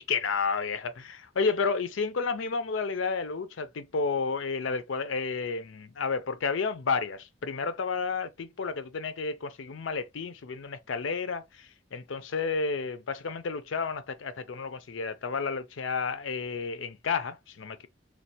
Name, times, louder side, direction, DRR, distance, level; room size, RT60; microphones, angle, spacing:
voice 1, 0.0-17.9, left 5 dB, 85° left, 0.5 m, -31 dB
3.2 x 2.2 x 2.8 m
head